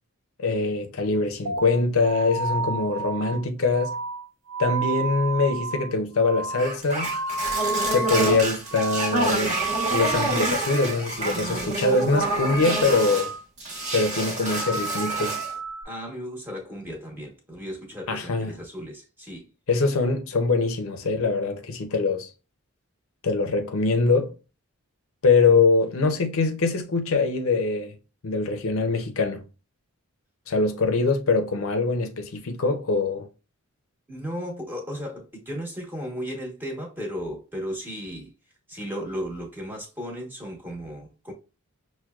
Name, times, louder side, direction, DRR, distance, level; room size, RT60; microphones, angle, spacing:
voice 1, 0.4-4.0 4.6-7.1 7.9-9.6 9.9-13.3 13.9-15.4 18.1-18.5 19.7-22.3 23.2-24.3 25.2-27.9 28.2-29.4 30.5-33.3, left 3 dB, 60° left, 0.5 m, -23 dB
sound 1, 1.5-8.4 8.7-9.2 9.5-10.9 11.2-11.7 12.0-13.4 13.8-14.1 14.5-15.8, right 4 dB, 70° right, 0.6 m, -31 dB
sound 2, 6.6-13.3 13.6-15.5, right 2 dB, 30° right, 1.1 m, -28 dB
voice 2, 15.8-19.5 34.1-38.3 38.7-41.3, equal, 10° right, 1.0 m, -35 dB
5.9 x 2.2 x 2.3 m
head